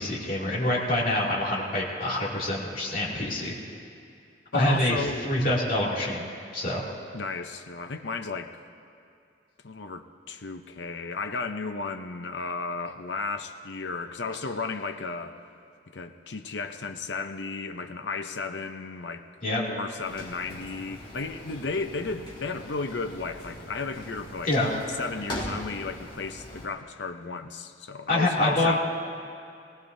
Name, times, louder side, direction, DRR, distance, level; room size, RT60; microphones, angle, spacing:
voice 1, 0.0-3.6 4.5-6.8 19.4-19.6 24.4-24.7 28.1-28.8, left 1 dB, 50° left, -5 dB, 2.6 m, -26 dB
voice 2, 4.5-5.6 7.1-8.6 9.6-15.4 15.9-19.3 19.7-24.5 25.0-28.8, left 4 dB, 65° left, 8 dB, 0.7 m, -34 dB
sound 1, 20.0-26.7, equal, 30° left, 2.0 m, -41 dB
19.0 x 18.5 x 2.7 m, 2.5 s
head